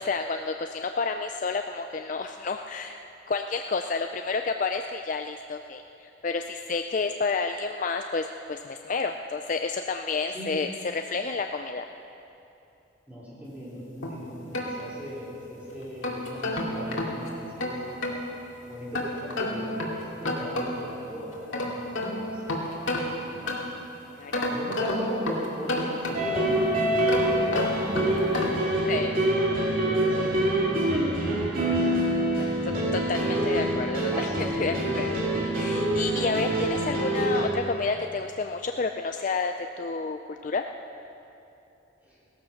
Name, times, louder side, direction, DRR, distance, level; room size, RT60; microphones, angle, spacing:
voice 1, 0.0-3.0 3.3-11.8 24.2-24.5 28.9-29.1 32.4-32.5 32.9-34.3 34.5-35.3 35.5-40.6, left 4 dB, 40° left, 6 dB, 0.4 m, -30 dB
voice 2, 13.1-17.8 18.6-21.8 22.1-23.5 24.3-28.1 29.0-31.8 34.1-35.0 42.0-42.2, equal, 10° right, -8 dB, 4.4 m, -39 dB
sound 1, 14.0-15.4 15.8-18.2 18.9-21.0 21.3-23.9 24.3-26.5 27.0-28.7, left 1 dB, 90° left, 2.4 m, -31 dB
sound 2, 26.1-37.5, right 1 dB, 45° right, 2.9 m, -25 dB
17.0 x 14.0 x 5.8 m, 2.8 s
head